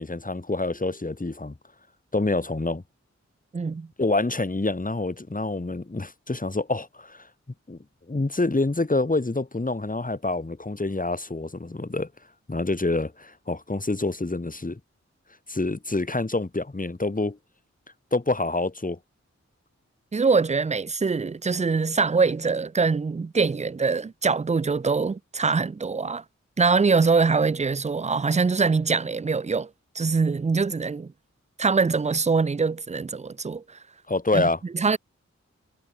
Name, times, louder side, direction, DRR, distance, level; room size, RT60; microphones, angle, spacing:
voice 1, 0.0-1.5 2.1-2.8 4.0-7.3 7.7-7.8 8.1-12.1 12.5-14.8 15.5-17.4 18.1-19.0 34.1-34.6, left 2 dB, 30° left, 1.8 m, -27 dB
voice 2, 3.5-3.9 20.1-26.2 26.6-29.7 30.0-31.1 31.6-33.6 34.3-34.5 34.7-35.0, right 4 dB, 25° right, 0.4 m, -23 dB
wide cardioid pair, 45°, 29 cm